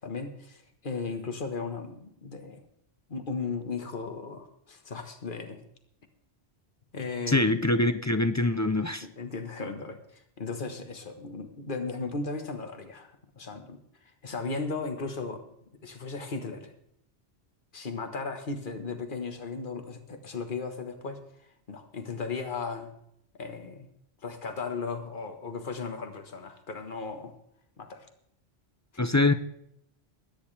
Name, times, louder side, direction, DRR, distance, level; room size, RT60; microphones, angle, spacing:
voice 1, 0.0-2.6 3.1-5.6 6.9-7.6 9.0-13.8 14.2-15.4 15.8-16.7 17.7-21.2 21.7-22.9 23.4-23.9 24.2-27.3 27.8-28.1, left 4 dB, 50° left, 6 dB, 1.6 m, -36 dB
voice 2, 7.3-9.0 29.0-29.3, left 2 dB, 25° left, 10 dB, 0.4 m, -24 dB
22.5 x 9.9 x 3.3 m, 0.74 s
omnidirectional pair, 1.1 m